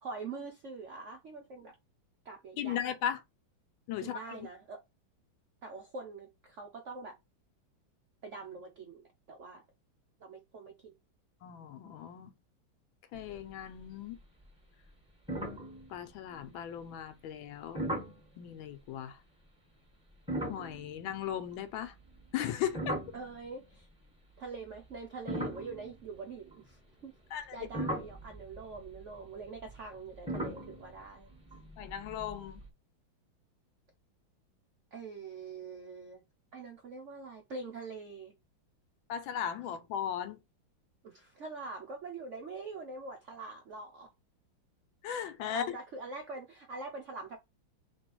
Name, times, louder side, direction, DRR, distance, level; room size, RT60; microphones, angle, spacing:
voice 1, 0.0-1.7 2.2-2.8 4.0-4.8 5.6-7.2 8.2-9.6 10.2-10.9 23.1-23.9 24.4-27.1 27.5-31.3 34.9-36.2 36.5-38.3 41.0-44.1 45.5-47.4, right 4 dB, 80° right, 0.6 m, -44 dB
voice 2, 2.6-3.2 3.9-4.5 11.4-12.3 13.1-14.2 15.9-17.8 18.4-19.2 20.5-21.9 22.3-23.0 27.3-27.7 31.8-32.6 39.1-40.4 45.0-45.8, left 9 dB, 80° left, 1.5 m, -37 dB
sound 1, 13.1-13.8 14.1-14.5 14.8-14.9 15.3-16.6 17.7-18.2 20.1-23.7 24.5-26.7 27.3-32.7, right 1 dB, 5° right, 0.9 m, -40 dB
3.3 x 3.1 x 4.5 m
omnidirectional pair, 2.2 m